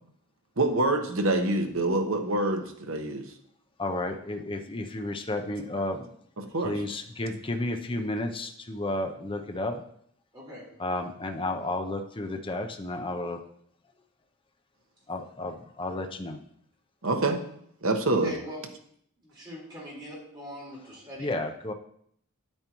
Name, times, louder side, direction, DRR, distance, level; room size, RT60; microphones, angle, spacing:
voice 1, 0.6-3.2 6.4-6.8 17.0-17.4 17.8-18.3, right 2 dB, 60° right, 5 dB, 1.1 m, -26 dB
voice 2, 3.8-6.1 6.6-9.8 10.8-13.4 15.1-16.4 21.2-21.7, left 2 dB, 25° left, 5 dB, 0.6 m, -32 dB
voice 3, 10.3-10.6 18.1-18.6 19.2-21.3, equal, 20° right, -6 dB, 4.3 m, -41 dB
9.4 x 8.8 x 3.0 m, 0.67 s
head